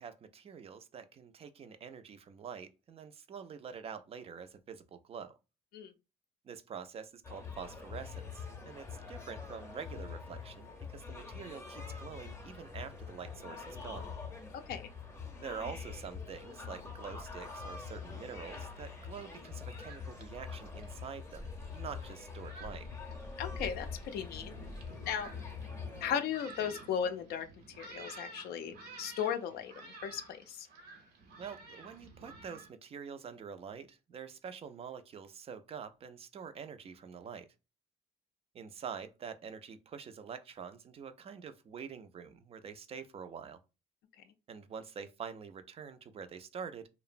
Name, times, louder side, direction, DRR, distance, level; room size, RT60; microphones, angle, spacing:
voice 1, 0.0-5.3 6.4-14.1 15.4-22.9 31.4-37.5 38.5-43.6 44.5-46.9, right 6 dB, 35° right, 0.4 m, -46 dB
sound 1, 7.2-26.1, left 5 dB, 15° left, 0.6 m, -44 dB
voice 2, 14.5-14.9 23.4-24.6 25.0-25.3 26.0-30.7, left 8 dB, 70° left, 0.4 m, -36 dB
Thunderstorm, 17.9-32.7, right 3 dB, 80° right, 0.8 m, -53 dB
2.8 x 2.0 x 2.5 m
cardioid pair, 110°, 17 cm